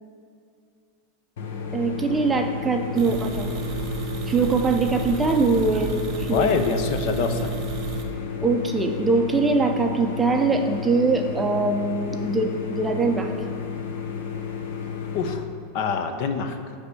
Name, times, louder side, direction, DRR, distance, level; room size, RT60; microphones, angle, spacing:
sound 1, 1.4-15.3, left 7 dB, 80° left, 0.9 m, -32 dB
voice 1, 1.7-3.5 4.3-6.5 8.4-13.3, right 3 dB, 10° right, 3 dB, 0.5 m, -22 dB
sound 2, 2.9-8.0, right 7 dB, 30° right, 0.9 m, -32 dB
voice 2, 6.3-7.5 15.1-15.5 15.7-16.7, left 5 dB, 50° left, 7 dB, 0.6 m, -25 dB
9.4 x 3.4 x 6.8 m, 2.3 s
supercardioid pair, 160°, 0 cm